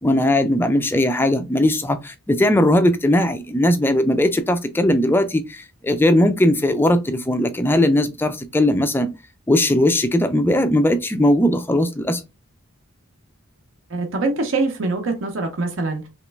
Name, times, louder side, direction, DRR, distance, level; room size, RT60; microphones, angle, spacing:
voice 1, 0.0-9.1 9.5-12.2, left 1 dB, 10° left, 0.3 m, -19 dB
voice 2, 13.9-16.1, right 3 dB, 60° right, 0.6 m, -24 dB
3.1 x 3.0 x 3.3 m
head